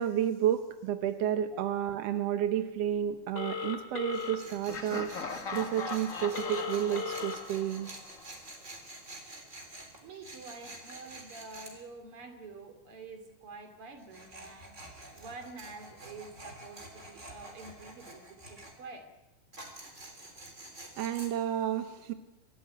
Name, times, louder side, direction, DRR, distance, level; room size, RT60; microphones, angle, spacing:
voice 1, 0.0-7.9 21.0-22.1, right 10 dB, 70° right, 9 dB, 1.5 m, -31 dB
Telephone, 3.3-4.4 6.3-7.4, left 5 dB, 45° left, 2.8 m, -36 dB
Tools, 4.1-11.7 14.0-18.7 19.5-21.3, right 2 dB, 20° right, 3.5 m, -48 dB
Laughter, 4.7-8.5, left 4 dB, 75° left, 0.7 m, -40 dB
voice 2, 10.0-19.1, right 3 dB, 40° right, 6 dB, 3.3 m, -48 dB
25.0 x 14.0 x 9.4 m, 0.99 s
omnidirectional pair, 4.0 m